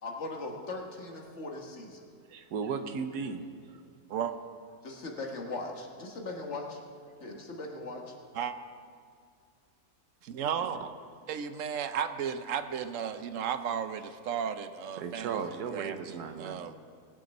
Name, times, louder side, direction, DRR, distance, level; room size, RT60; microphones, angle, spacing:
voice 1, 0.0-2.0 4.8-6.8 7.1-8.1, left 2 dB, 50° left, 1 dB, 1.7 m, -39 dB
voice 2, 2.3-3.8 10.6-10.7 11.3-11.4 14.9-16.6, right 5 dB, 85° right, 8 dB, 1.4 m, -36 dB
voice 3, 10.2-10.9 11.3-15.3 15.7-16.0 16.4-16.7, right 8 dB, 65° right, 10 dB, 0.9 m, -34 dB
19.0 x 7.8 x 5.3 m, 2.2 s
omnidirectional pair, 1.7 m